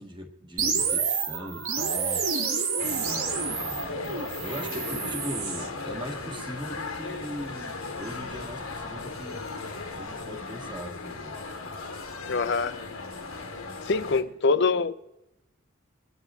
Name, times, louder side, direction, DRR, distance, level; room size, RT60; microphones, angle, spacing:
voice 1, 0.0-2.6 3.0-3.8 4.4-9.5 10.0-11.4, equal, 20° right, 1.7 m, -40 dB
sound 1, 0.6-5.7, right 5 dB, 80° right, 1.8 m, -29 dB
sound 2, 2.8-14.2, left 3 dB, 80° left, 1.3 m, -37 dB
sound 3, 3.2-10.2, equal, 5° right, 1.2 m, -49 dB
voice 2, 12.3-12.8 13.9-14.9, left 4 dB, 55° left, 0.5 m, -24 dB
25.0 x 9.5 x 3.7 m
head